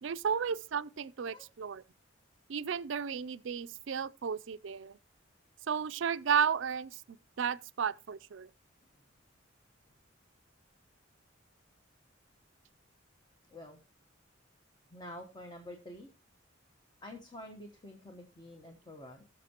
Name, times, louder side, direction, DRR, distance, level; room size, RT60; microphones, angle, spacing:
voice 1, 0.0-1.8 2.5-5.0 5.7-8.5, right 7 dB, 65° right, 0.4 m, -33 dB
voice 2, 13.5-13.8 14.9-16.1 17.0-19.2, left 1 dB, 20° left, 1.1 m, -48 dB
18.5 x 6.6 x 2.9 m
head